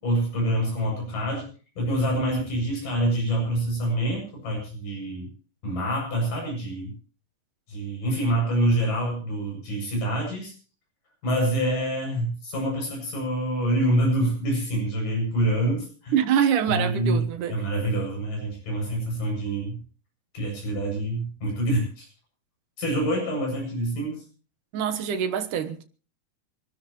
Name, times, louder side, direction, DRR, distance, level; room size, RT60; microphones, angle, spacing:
voice 1, 0.0-1.5 1.8-5.3 5.6-6.9 7.7-10.5 11.2-16.1 16.7-17.2 17.5-19.8 20.3-22.1 22.8-24.2, right 1 dB, 90° left, 9.5 m, -26 dB
voice 2, 16.1-17.6 24.7-25.8, right 8 dB, 75° right, 2.8 m, -25 dB
26.5 x 13.0 x 3.1 m
omnidirectional pair, 3.7 m